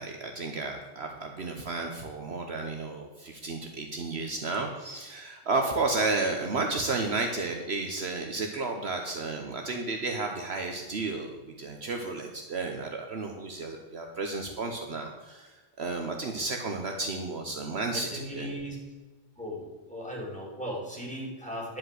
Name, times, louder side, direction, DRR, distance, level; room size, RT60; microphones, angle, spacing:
voice 1, 0.0-18.5, right 3 dB, 60° right, 3 dB, 1.2 m, -32 dB
voice 2, 17.9-18.8 19.4-21.8, equal, 5° left, -3 dB, 3.0 m, -37 dB
11.0 x 5.3 x 7.7 m, 1.2 s
omnidirectional pair, 1.3 m